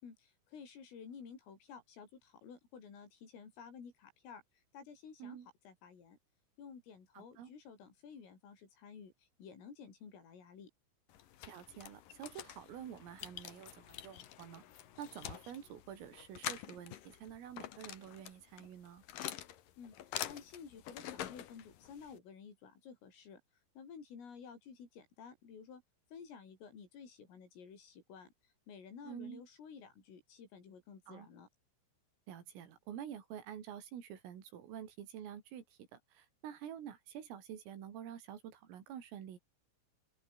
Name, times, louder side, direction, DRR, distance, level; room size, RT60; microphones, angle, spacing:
voice 1, 0.0-5.4 5.6-6.2 6.6-10.7 19.8-23.4 23.8-25.8 26.1-31.5, left 6 dB, 80° left, 8.4 m, -53 dB
voice 2, 7.2-7.5 11.5-14.6 15.0-19.0 29.0-29.4 31.1-31.3 32.3-39.4, right 9 dB, 90° right, 5.9 m, -48 dB
sound 1, 11.1-22.2, left 11 dB, 60° left, 2.5 m, -47 dB
open air
omnidirectional pair, 5.7 m